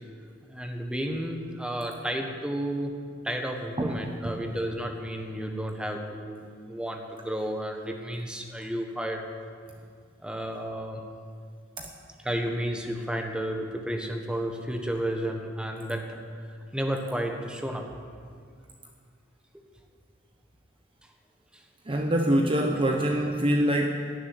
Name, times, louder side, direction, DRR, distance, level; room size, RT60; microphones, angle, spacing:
voice 1, 0.5-2.9 3.2-9.2 10.2-11.0 12.2-16.2 16.7-17.9 22.8-23.3, right 1 dB, 5° right, 3 dB, 1.4 m, -32 dB
voice 2, 3.8-4.4 11.8-11.9 21.9-24.1, right 1 dB, 25° right, 3 dB, 0.8 m, -25 dB
17.0 x 7.4 x 9.8 m, 2.1 s
head